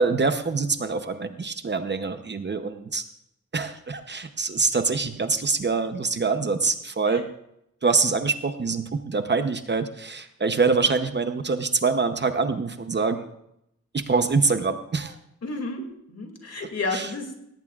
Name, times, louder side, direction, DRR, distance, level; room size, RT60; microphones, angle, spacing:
voice 1, 0.0-3.0 3.5-7.3 7.8-13.3 13.9-15.2 16.9-17.1, right 4 dB, 40° right, 8 dB, 0.8 m, -25 dB
voice 2, 15.4-17.4, left 3 dB, 60° left, 3 dB, 2.4 m, -31 dB
17.5 x 17.5 x 2.4 m, 0.79 s
wide cardioid pair, 170°, 29 cm